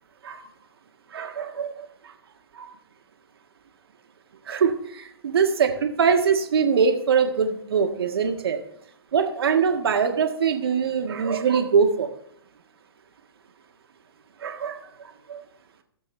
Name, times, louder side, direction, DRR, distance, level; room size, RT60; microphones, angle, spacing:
voice 1, 1.1-1.7 2.6-2.7 4.5-8.6 9.1-12.1 14.4-14.8 15.3-15.4, right 6 dB, 65° right, 5 dB, 1.6 m, -22 dB
15.0 x 7.4 x 3.3 m, 0.73 s
figure-of-eight pair, 120°, 14 cm